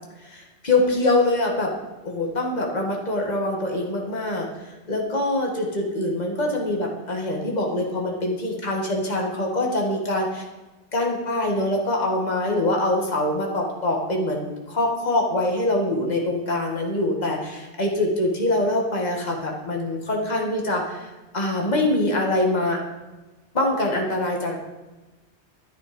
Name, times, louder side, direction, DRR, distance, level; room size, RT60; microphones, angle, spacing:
voice 1, 0.2-1.7 2.0-10.4 10.9-22.8 23.5-24.6, left 1 dB, 40° left, 0 dB, 2.1 m, -24 dB
11.0 x 10.0 x 5.2 m, 1.1 s
omnidirectional pair, 1.2 m